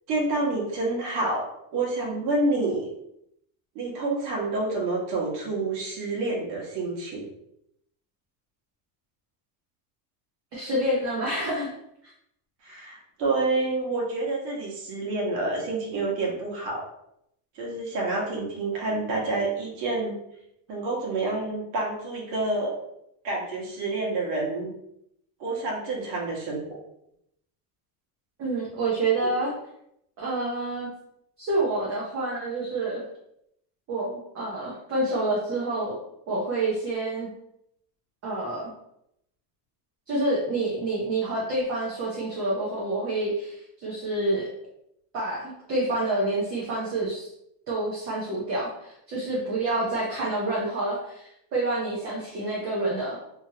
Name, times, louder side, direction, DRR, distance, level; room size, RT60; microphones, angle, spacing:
voice 1, 0.1-2.9 3.7-7.3 12.6-16.8 17.5-20.2 20.7-22.8 23.2-24.7 25.4-26.6 29.2-29.3, right 2 dB, 75° right, -3 dB, 1.2 m, -28 dB
voice 2, 10.5-11.7 28.4-29.5 30.2-30.9 31.4-33.0 33.9-36.0 36.3-37.3 38.2-38.7 40.1-44.5 45.1-47.3 47.7-53.2, right 2 dB, 30° right, -6 dB, 0.6 m, -28 dB
2.9 x 2.5 x 2.7 m, 0.77 s
cardioid pair, 160°, 48 cm